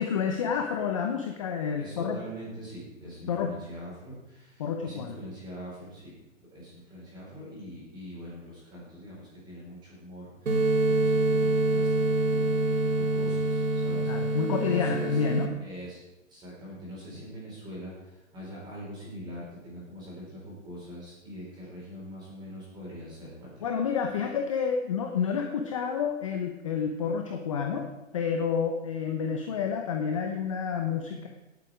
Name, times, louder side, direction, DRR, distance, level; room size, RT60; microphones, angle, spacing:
voice 1, 0.0-2.2 3.3-3.5 4.6-5.2 14.1-15.5 23.6-27.9 28.1-31.3, left 6 dB, 25° left, 4 dB, 0.7 m, -29 dB
voice 2, 1.8-6.1 6.5-16.0 16.3-23.7, equal, 10° right, -6 dB, 4.8 m, -43 dB
sound 1, 10.5-15.5, right 2 dB, 85° right, 2.3 m, -26 dB
17.5 x 7.9 x 5.0 m, 1.0 s
hypercardioid pair, 165°, 40 cm